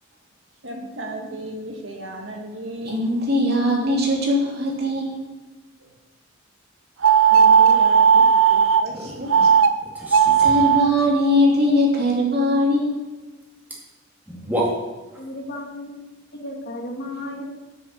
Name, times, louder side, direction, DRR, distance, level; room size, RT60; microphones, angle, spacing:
voice 1, 0.6-3.1 5.8-5.9 7.3-9.2, right 1 dB, 70° right, 1 dB, 1.9 m, -35 dB
voice 2, 2.8-5.2 9.2-9.5 10.4-13.0, left 1 dB, 55° right, -2 dB, 3.0 m, -20 dB
sound 1, 7.0-8.8 9.3-9.7 10.0-10.9, right 7 dB, 90° right, 0.7 m, -15 dB
sound 2, 8.9-9.2 9.8-10.8 13.4-13.5 13.7-13.8 14.3-15.3, equal, 10° right, 2.1 m, -29 dB
voice 3, 15.2-16.0 16.3-17.4, left 1 dB, 55° left, 2 dB, 1.9 m, -34 dB
9.1 x 7.0 x 7.6 m, 1.2 s
head